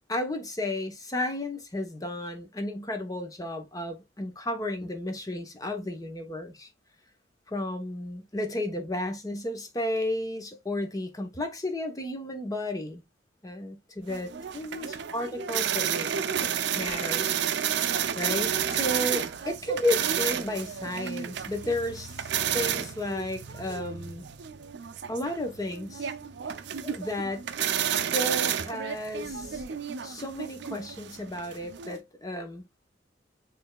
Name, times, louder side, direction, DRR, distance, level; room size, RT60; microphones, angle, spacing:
voice 1, 0.1-6.7 7.5-13.0 13.4-16.5 16.7-17.6 18.1-24.2 25.1-26.1 26.8-27.4 27.9-29.6 30.0-32.6, left 1 dB, 20° left, 0.8 m, -33 dB
sound 1, 14.1-32.0, right 8 dB, 65° right, 0.5 m, -31 dB
6.9 x 3.3 x 2.2 m
head